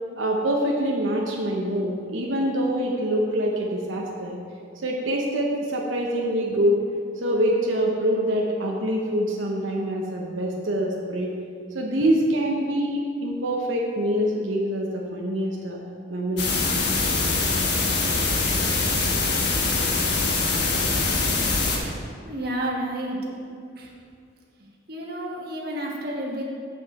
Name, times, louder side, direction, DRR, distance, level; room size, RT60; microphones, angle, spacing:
voice 1, 0.2-4.4 4.8-6.8 7.2-11.3 11.7-15.8 16.1-16.5, equal, 90° right, -1 dB, 0.9 m, -25 dB
sound 1, 16.4-21.8, left 3 dB, 60° left, 1.2 m, -23 dB
voice 2, 22.2-23.2 23.8-23.9 24.9-26.4, right 1 dB, 50° right, -2 dB, 1.3 m, -30 dB
7.7 x 7.3 x 4.2 m, 2.4 s
head